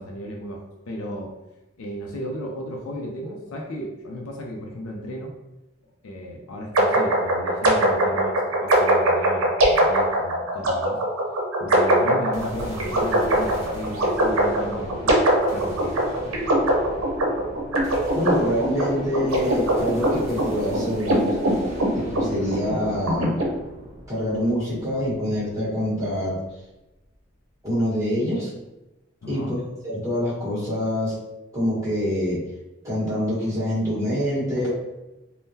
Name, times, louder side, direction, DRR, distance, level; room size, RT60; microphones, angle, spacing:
voice 1, 0.0-1.3 1.8-5.3 6.0-11.0 11.6-16.0 29.2-29.6, equal, 80° left, 0 dB, 0.5 m, -34 dB
sound 1, 6.7-23.4, right 1 dB, 80° right, 0.7 m, -21 dB
sound 2, 12.3-26.6, equal, 35° right, 0.9 m, -40 dB
voice 2, 18.1-21.4 21.9-23.4 24.1-26.4 27.6-28.5 29.3-29.6 29.8-31.2 31.5-32.4 32.8-34.7, equal, 15° right, -8 dB, 1.2 m, -25 dB
3.6 x 2.1 x 2.7 m, 0.97 s
head